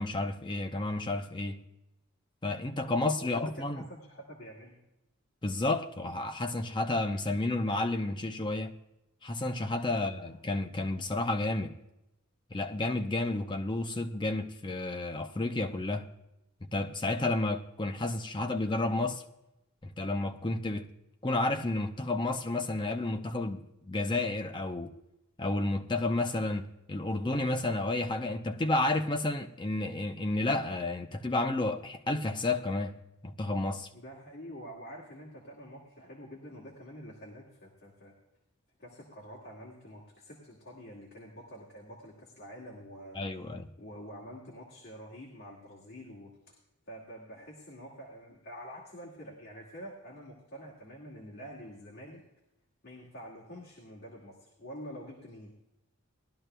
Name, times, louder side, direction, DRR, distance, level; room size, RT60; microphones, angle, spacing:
voice 1, 0.0-1.6 2.4-3.8 5.4-8.7 9.2-11.7 12.5-16.1 16.6-19.2 20.0-20.9 21.2-24.9 25.4-32.9 33.2-33.9 43.1-43.7, left 2 dB, 20° left, 0.5 m, -31 dB
voice 2, 3.2-4.8 9.9-10.3 33.9-38.1 38.8-43.2 43.8-46.6 46.9-52.2 52.8-55.5, equal, 45° left, 2.0 m, -47 dB
19.5 x 12.0 x 2.2 m
head